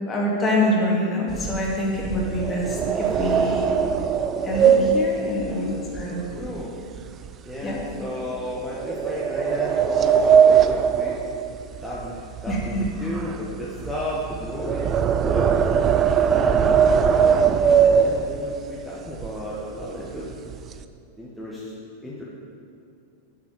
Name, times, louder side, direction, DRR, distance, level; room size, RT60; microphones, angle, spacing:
voice 1, 0.1-3.6 4.4-5.7 5.9-6.2 7.6-7.8 12.5-12.8, left 1 dB, 20° left, -3 dB, 2.2 m, -25 dB
sound 1, 1.3-6.7 7.0-7.3 7.8-7.9 8.7-12.1 12.3-18.6 19.2-19.3 19.6-19.8 20.2-20.8, right 7 dB, 30° right, 0.4 m, -20 dB
voice 2, 4.9-5.8 6.1-6.7 7.4-11.2 11.8-15.7 16.2-20.3 21.2-21.7 22.0-22.2, equal, ahead, -7 dB, 1.3 m, -33 dB
8.6 x 6.2 x 7.6 m, 2.5 s
figure-of-eight pair, 90°, 0 cm